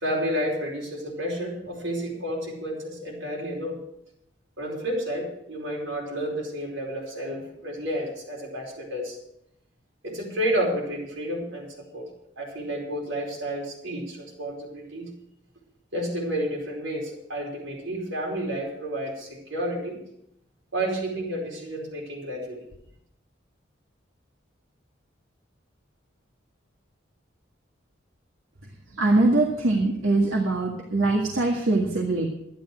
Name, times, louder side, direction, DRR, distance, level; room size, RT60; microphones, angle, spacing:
voice 1, 0.0-3.8 4.6-9.2 10.0-12.1 12.4-15.1 15.9-20.0 20.7-22.7, equal, 70° right, -2 dB, 4.9 m, -31 dB
voice 2, 29.0-32.3, right 2 dB, 85° right, 0 dB, 1.9 m, -22 dB
12.0 x 10.5 x 6.4 m, 0.76 s
head